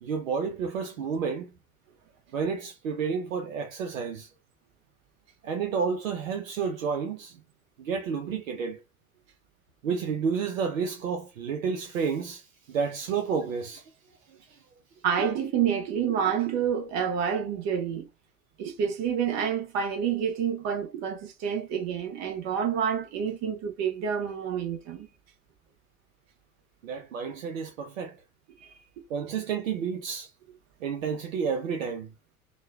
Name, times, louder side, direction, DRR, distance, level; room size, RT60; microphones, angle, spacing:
voice 1, 0.0-1.5 2.3-4.3 5.4-7.3 7.8-8.8 9.8-12.4 12.7-13.8 26.8-28.2 29.1-30.3 30.8-32.1, right 6 dB, 65° right, 0.6 m, -30 dB
voice 2, 15.0-18.1 18.6-25.1 28.6-28.7, right 8 dB, 35° right, 0.9 m, -28 dB
3.0 x 2.2 x 2.3 m
figure-of-eight pair, 85°, 43 cm